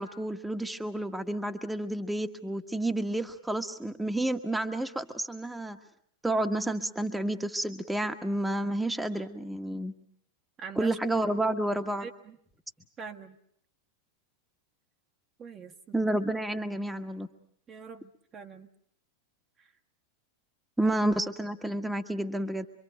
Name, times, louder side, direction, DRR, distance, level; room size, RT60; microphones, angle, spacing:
voice 1, 0.0-5.8 6.2-9.9 10.8-12.1 15.9-17.3 20.8-22.7, right 1 dB, 5° right, 7 dB, 1.4 m, -30 dB
voice 2, 10.6-11.0 12.0-12.4 13.0-13.4 15.4-16.0 17.7-18.7 19.6-19.7 20.8-21.0, right 5 dB, 25° right, 6 dB, 1.4 m, -44 dB
26.0 x 24.5 x 8.1 m, 0.66 s
figure-of-eight pair, 90°, 0 cm